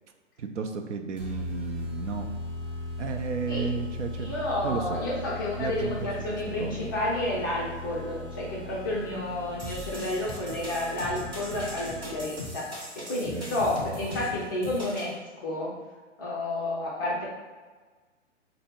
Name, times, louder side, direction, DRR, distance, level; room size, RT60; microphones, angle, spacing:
voice 1, 0.4-2.3 3.0-4.3 4.6-5.0 5.6-6.1 6.6-6.9 13.2-13.6, right 5 dB, 70° right, 4 dB, 0.6 m, -33 dB
sound 1, 1.2-12.5, left 2 dB, 45° right, 0.9 m, -39 dB
voice 2, 4.2-15.7 16.2-17.2, left 1 dB, 20° left, -5 dB, 0.4 m, -31 dB
sound 2, 9.6-15.1, left 1 dB, 15° right, 0.7 m, -39 dB
4.2 x 2.0 x 3.5 m, 1.4 s
figure-of-eight pair, 120°, 37 cm